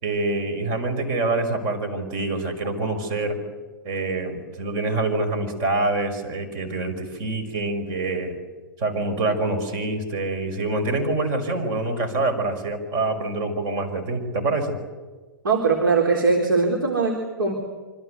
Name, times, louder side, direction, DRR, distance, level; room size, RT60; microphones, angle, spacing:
voice 1, 0.0-3.4 3.8-8.4 8.8-14.8, right 2 dB, 35° right, 8 dB, 5.5 m, -26 dB
voice 2, 15.4-17.5, right 4 dB, 70° right, 2 dB, 3.8 m, -21 dB
26.0 x 25.5 x 8.2 m, 1.3 s
figure-of-eight pair, 105°, 12 cm